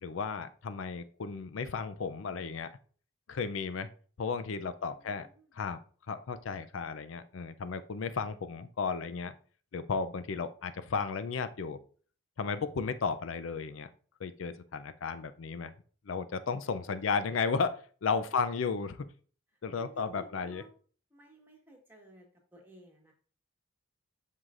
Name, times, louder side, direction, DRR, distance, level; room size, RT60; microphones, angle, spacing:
voice 1, 0.0-2.7 3.3-3.9 4.2-5.3 5.5-5.8 6.1-9.3 9.7-11.8 12.4-13.9 14.2-15.7 16.1-19.0 19.6-20.6, left 5 dB, 85° left, 12 dB, 0.5 m, -34 dB
voice 2, 4.8-5.5 16.5-16.6 19.5-20.7 21.1-23.1, right 1 dB, 10° right, 0 dB, 1.3 m, -56 dB
7.8 x 5.7 x 2.5 m, 0.42 s
head